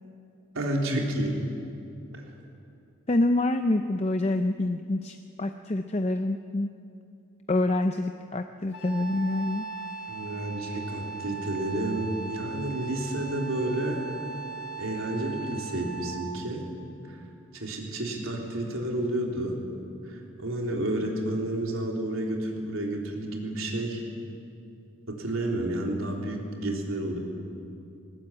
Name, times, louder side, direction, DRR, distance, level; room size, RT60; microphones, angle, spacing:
voice 1, 0.5-1.4 2.1-2.3 10.1-14.0 14.8-16.6 17.0-17.2 17.5-19.6 20.0-24.0 25.1-27.2, right 1 dB, 80° right, 0 dB, 3.6 m, -30 dB
voice 2, 3.1-6.7 7.5-9.7, left 2 dB, 30° left, 7 dB, 0.5 m, -26 dB
Wind instrument woodwind instrument, 8.7-16.3, right 5 dB, 50° left, 2.6 m, -38 dB
20.0 x 20.0 x 8.7 m, 2.7 s
head